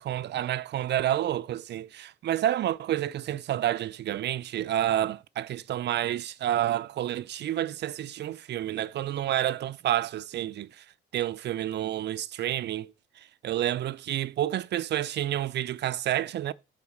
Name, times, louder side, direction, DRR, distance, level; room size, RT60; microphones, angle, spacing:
voice 1, 0.0-10.8 11.1-16.5, right 12 dB, 60° right, 0.5 m, -29 dB
7.1 x 4.4 x 6.4 m
cardioid pair, 120°, 20 cm